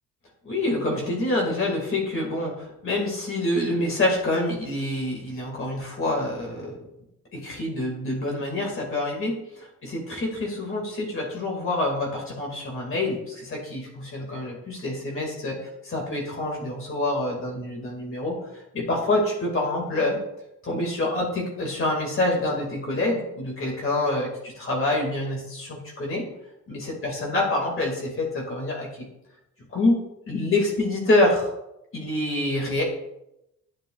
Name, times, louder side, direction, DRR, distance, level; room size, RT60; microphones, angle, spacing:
voice 1, 0.4-6.8 7.3-15.6 15.9-20.2 20.6-26.3 26.7-29.1 29.7-31.5 31.9-32.8, left 2 dB, 45° left, -1 dB, 2.2 m, -26 dB
10.5 x 6.9 x 2.4 m, 0.86 s
cardioid pair, 90°, 30 cm